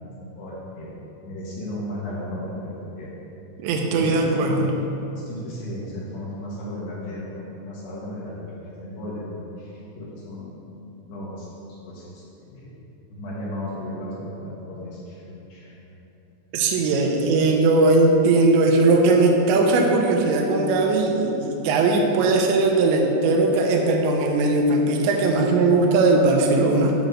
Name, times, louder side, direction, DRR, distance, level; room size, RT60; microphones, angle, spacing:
voice 1, 0.2-0.9 1.2-3.1 3.9-4.6 5.2-10.6 11.1-11.5 11.9-12.8 13.1-15.9 16.7-16.8, left 1 dB, 70° left, -6 dB, 2.8 m, -35 dB
voice 2, 3.6-4.7 16.5-26.9, right 2 dB, 80° right, 1 dB, 2.7 m, -19 dB
9.3 x 3.9 x 6.3 m, 2.8 s
omnidirectional pair, 5.9 m